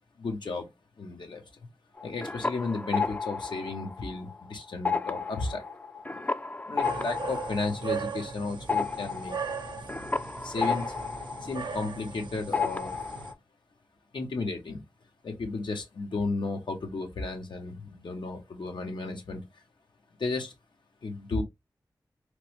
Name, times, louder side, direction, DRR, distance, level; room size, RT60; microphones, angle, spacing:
voice 1, 0.2-0.7 1.0-1.4 2.0-5.6 6.7-9.4 10.4-10.9 11.4-13.0 14.1-14.8 15.2-19.4 20.2-20.5 21.0-21.4, left 3 dB, 85° left, 0.8 m, -33 dB
sound 1, 2.0-4.4 4.7-12.2 12.5-13.3, left 4 dB, 20° left, 0.3 m, -33 dB
sound 2, 6.8-13.3, right 6 dB, 85° right, 0.4 m, -38 dB
3.0 x 2.1 x 2.9 m
cardioid pair, 40°, 8 cm